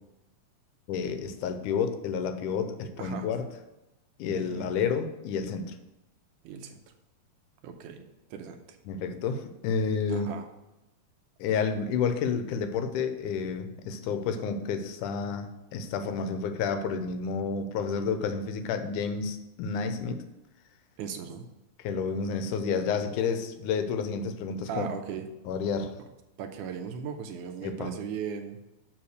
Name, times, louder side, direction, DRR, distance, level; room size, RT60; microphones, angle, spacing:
voice 1, 0.9-3.5 4.2-5.8 8.9-10.3 11.4-20.2 21.8-24.9 25.5-25.9 27.6-27.9, left 6 dB, 85° left, 8 dB, 2.2 m, -30 dB
voice 2, 4.3-4.7 6.4-6.8 7.6-8.8 10.1-10.5 21.0-21.5 24.7-25.2 26.4-28.6, right 7 dB, 85° right, 6 dB, 2.3 m, -37 dB
7.2 x 5.1 x 6.4 m, 0.96 s
omnidirectional pair, 3.5 m